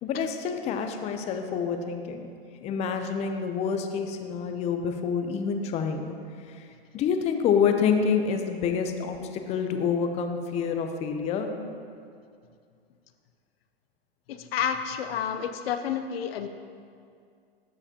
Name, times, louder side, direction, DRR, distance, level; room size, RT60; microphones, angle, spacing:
voice 1, 0.0-2.3 2.6-6.1 6.5-6.7 6.9-11.5, left 6 dB, 20° left, 6 dB, 0.5 m, -27 dB
voice 2, 14.3-16.5, left 8 dB, 70° left, 9 dB, 0.6 m, -30 dB
13.5 x 4.9 x 2.9 m, 2.3 s
hypercardioid pair, 120°, 30 cm